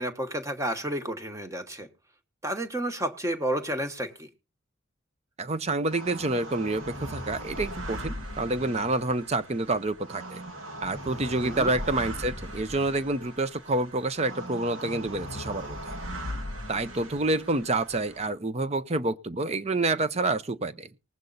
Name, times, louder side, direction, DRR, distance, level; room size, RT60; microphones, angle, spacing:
voice 1, 0.0-1.9 2.4-4.3 11.4-11.7, right 1 dB, 15° right, 1.2 m, -31 dB
voice 2, 5.4-10.4 10.8-16.0 16.7-20.9, right 2 dB, 30° right, 0.6 m, -28 dB
sound 1, 5.9-18.3, equal, 85° right, 2.4 m, -39 dB
19.5 x 8.1 x 4.0 m
head